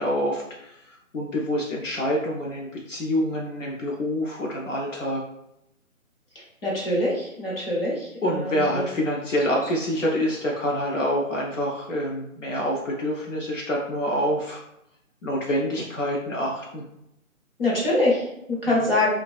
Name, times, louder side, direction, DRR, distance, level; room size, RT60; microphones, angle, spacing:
voice 1, 0.0-5.2 8.2-14.6 15.2-16.8 18.7-18.9, equal, 60° left, -2 dB, 0.5 m, -27 dB
voice 2, 6.6-8.1 8.7-8.8 17.6-19.1, left 2 dB, 45° left, -5 dB, 0.8 m, -23 dB
2.3 x 2.2 x 2.3 m, 0.81 s
hypercardioid pair, 175°, 42 cm